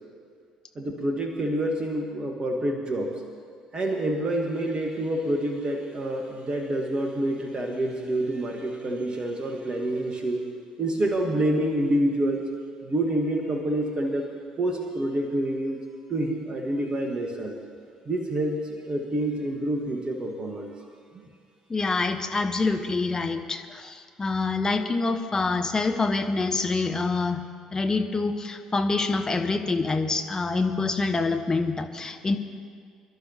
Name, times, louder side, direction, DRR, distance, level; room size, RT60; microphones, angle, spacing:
voice 1, 0.7-3.2 3.7-10.5 10.8-12.4 12.8-14.3 14.6-15.8 16.1-17.6 18.0-20.9 21.1-21.3, right 1 dB, 30° right, 2 dB, 1.4 m, -27 dB
voice 2, 21.7-27.4 27.7-32.4, left 3 dB, 20° left, 6 dB, 1.0 m, -26 dB
26.5 x 11.5 x 2.9 m, 2.1 s
figure-of-eight pair, 50°, 3 cm